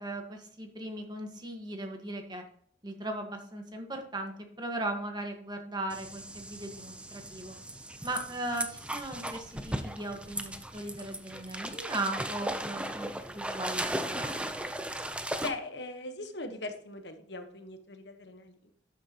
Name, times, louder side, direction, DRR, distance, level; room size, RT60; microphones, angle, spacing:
voice 1, 0.0-2.4 2.8-7.5 8.0-14.6, right 2 dB, 25° right, 4 dB, 1.6 m, -38 dB
sound 1, 5.9-15.5, right 1 dB, 5° right, 0.7 m, -37 dB
voice 2, 15.4-18.7, left 2 dB, 70° left, 7 dB, 1.4 m, -40 dB
12.0 x 9.0 x 3.0 m, 0.64 s
head